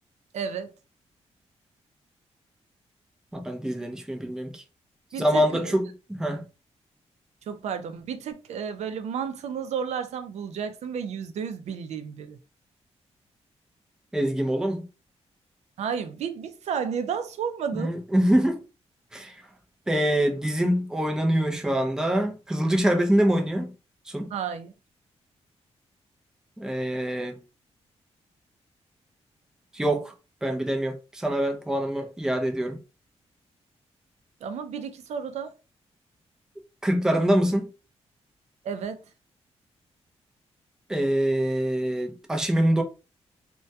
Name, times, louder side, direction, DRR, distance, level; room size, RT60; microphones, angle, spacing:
voice 1, 0.3-0.7 5.1-5.7 7.5-12.4 15.8-17.9 24.3-24.7 34.4-35.5 38.6-39.0, right 7 dB, 75° right, 0.4 m, -32 dB
voice 2, 3.3-4.6 5.2-6.4 14.1-14.8 17.7-18.6 19.1-19.3 19.9-23.7 24.1-24.3 26.6-27.4 29.7-30.1 30.4-32.8 36.8-37.6 40.9-42.8, right 1 dB, 5° right, 0.4 m, -25 dB
2.2 x 2.1 x 2.6 m
cardioid pair, 115°, 11 cm